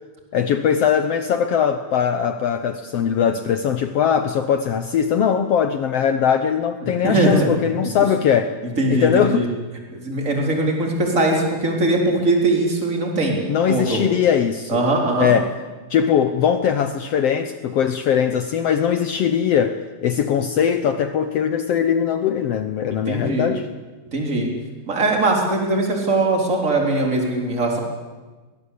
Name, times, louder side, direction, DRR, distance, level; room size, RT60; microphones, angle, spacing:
voice 1, 0.3-8.6 8.9-9.5 13.5-14.8 15.2-15.5 15.9-23.7, left 8 dB, 80° left, 9 dB, 1.4 m, -20 dB
voice 2, 6.8-7.5 8.8-9.5 9.9-13.4 13.7-14.0 14.7-15.3 23.1-23.5 24.1-24.5 24.8-27.8, right 2 dB, 20° right, 1 dB, 4.1 m, -20 dB
22.0 x 20.5 x 8.4 m, 1.3 s
omnidirectional pair, 4.0 m